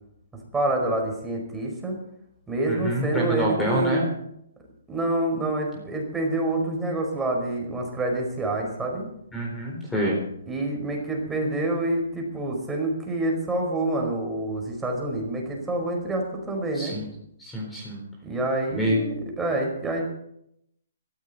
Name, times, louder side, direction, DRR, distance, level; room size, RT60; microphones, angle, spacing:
voice 1, 0.5-2.0 2.5-4.0 4.9-9.1 10.5-16.9 18.2-20.0, right 2 dB, 10° right, 1 dB, 4.8 m, -27 dB
voice 2, 2.7-4.0 9.3-10.2 16.7-17.1 17.4-18.0 18.7-19.0, right 1 dB, 5° left, -2 dB, 4.1 m, -26 dB
18.0 x 14.5 x 4.3 m, 0.74 s
hypercardioid pair, 155°, 0 cm